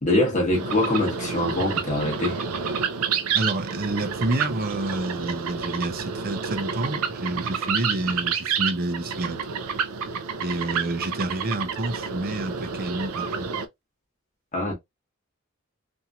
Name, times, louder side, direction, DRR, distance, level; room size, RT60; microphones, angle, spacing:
voice 1, 0.0-2.4 14.5-14.7, left 1 dB, 35° left, 1.1 m, -24 dB
sound 1, 0.5-13.7, right 6 dB, 90° right, 0.4 m, -29 dB
voice 2, 3.3-9.4 10.4-13.5, right 2 dB, 45° right, 0.6 m, -29 dB
2.9 x 2.6 x 2.3 m
head